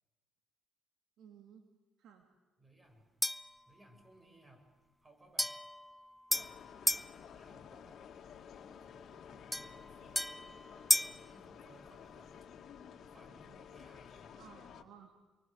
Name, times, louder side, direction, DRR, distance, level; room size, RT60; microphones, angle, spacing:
voice 1, 1.2-1.7 2.0-2.3 14.4-15.4, right 8 dB, 70° right, 5 dB, 2.5 m, -57 dB
voice 2, 2.6-3.1 3.7-4.7 5.0-5.5 7.2-8.1 8.8-10.3 10.7-12.3 13.1-14.4, right 1 dB, 30° right, 5 dB, 7.8 m, -62 dB
sound 1, 3.2-3.6 5.4-7.1 9.5-11.2, equal, ahead, 0.8 m, -34 dB
sound 2, 6.3-14.8, left 7 dB, 60° left, 2.0 m, -53 dB
29.0 x 23.5 x 8.1 m, 1.2 s
hypercardioid pair, 55°, 0 cm